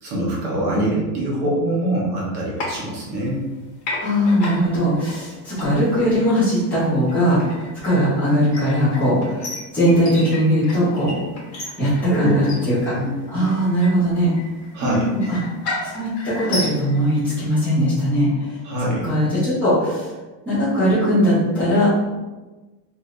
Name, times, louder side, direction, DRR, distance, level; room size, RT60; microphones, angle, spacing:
voice 1, 0.0-3.4 12.1-12.4 12.8-13.1 14.7-15.0 18.6-19.1, right 1 dB, 30° right, -4 dB, 0.7 m, -24 dB
sound 1, 2.6-3.5 3.8-17.2, left 2 dB, 50° left, 1.2 m, -34 dB
voice 2, 4.0-7.4 7.8-9.4 9.7-11.1 11.8-12.9 13.3-14.3 14.8-15.4 15.8-18.6 19.0-20.1 20.4-21.9, equal, 5° left, -14 dB, 0.8 m, -19 dB
2.6 x 2.6 x 3.1 m, 1.2 s
supercardioid pair, 180°, 47 cm